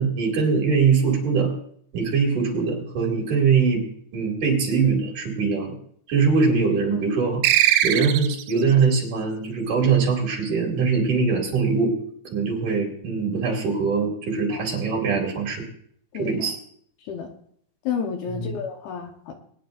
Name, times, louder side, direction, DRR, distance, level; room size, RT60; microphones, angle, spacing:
voice 1, 0.0-1.5 1.9-3.8 4.1-5.7 6.1-7.4 7.8-11.9 12.3-15.6 16.1-16.6 18.3-18.6, right 5 dB, 50° right, -2 dB, 3.6 m, -22 dB
sound 1, 7.4-8.6, right 12 dB, 90° right, 2.8 m, -20 dB
voice 2, 16.1-16.5 17.1-17.3 17.8-19.3, left 7 dB, 70° left, 3 dB, 2.9 m, -31 dB
20.5 x 10.5 x 2.6 m, 0.63 s
omnidirectional pair, 4.9 m